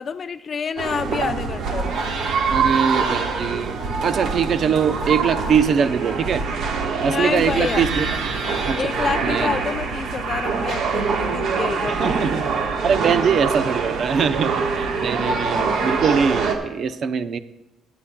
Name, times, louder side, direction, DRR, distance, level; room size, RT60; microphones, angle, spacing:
voice 1, 0.0-2.0 7.0-7.9 8.7-12.4, left 6 dB, 45° left, 12 dB, 0.4 m, -28 dB
sound 1, 0.8-16.5, right 5 dB, 70° right, 1.3 m, -24 dB
voice 2, 2.5-6.4 7.0-8.1 8.7-8.8 9.2-9.6 11.9-12.5 12.8-17.4, right 6 dB, 55° right, 11 dB, 0.6 m, -22 dB
20.5 x 8.5 x 2.2 m, 0.96 s
cardioid pair, 95°, 0 cm